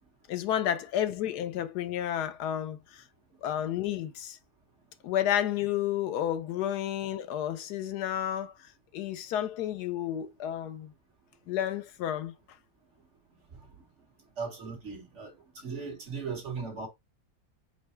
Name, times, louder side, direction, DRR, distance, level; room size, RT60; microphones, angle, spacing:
voice 1, 0.3-3.0 3.4-4.4 5.0-10.9 11.5-12.3, left 11 dB, 90° left, 1.2 m, -31 dB
voice 2, 14.4-16.9, right 5 dB, 50° right, 1.7 m, -38 dB
4.6 x 2.1 x 4.3 m
omnidirectional pair, 1.7 m